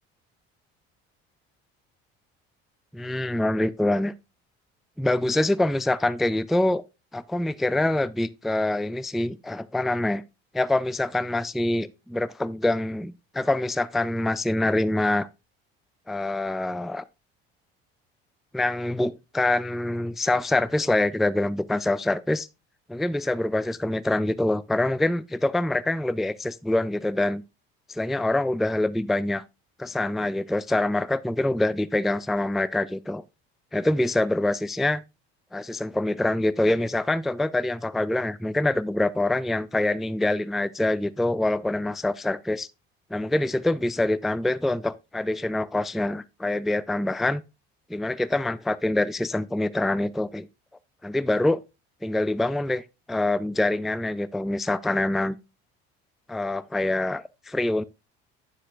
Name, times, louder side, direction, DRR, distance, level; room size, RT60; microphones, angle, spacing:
voice 1, 2.9-4.1 5.0-6.8 7.1-10.2 10.5-15.3 16.1-17.0 18.5-22.5 22.9-27.4 27.9-29.4 29.8-33.2 33.7-35.0 35.5-42.7 43.1-47.4 47.9-50.5 51.0-51.6 52.0-55.4 56.3-57.8, left 2 dB, ahead, 0.3 m, -25 dB
9.1 x 7.3 x 2.3 m
hypercardioid pair, 70°, 31 cm